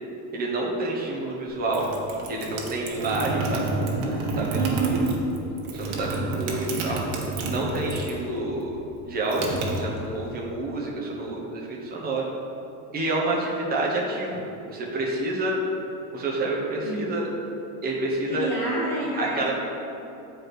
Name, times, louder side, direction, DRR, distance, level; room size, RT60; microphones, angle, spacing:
voice 1, 0.3-1.9 2.3-4.7 5.7-7.0 7.4-8.8 9.0-12.2 12.9-14.4 14.7-15.6 16.1-17.2 17.8-18.5 19.2-19.5, right 2 dB, 20° right, -2 dB, 1.2 m, -28 dB
sound 1, 1.5-8.3 8.5-10.4, right 2 dB, 80° right, 1.4 m, -29 dB
voice 2, 4.6-5.1 16.8-17.0 18.3-19.5, right 3 dB, 5° left, -9 dB, 1.9 m, -28 dB
8.5 x 4.7 x 5.0 m, 2.8 s
cardioid pair, 165°, 41 cm